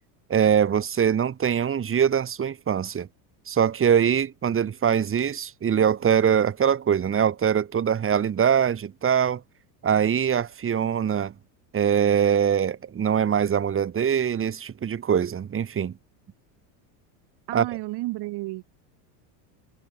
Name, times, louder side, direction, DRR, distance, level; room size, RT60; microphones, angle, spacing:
voice 1, 0.3-3.1 3.5-9.4 9.8-11.3 11.7-15.9 17.5-17.7, right 8 dB, 25° right, 2.2 m, -23 dB
voice 2, 17.5-18.6, right 19 dB, 55° right, 2.5 m, -31 dB
supercardioid pair, 120°, 48 cm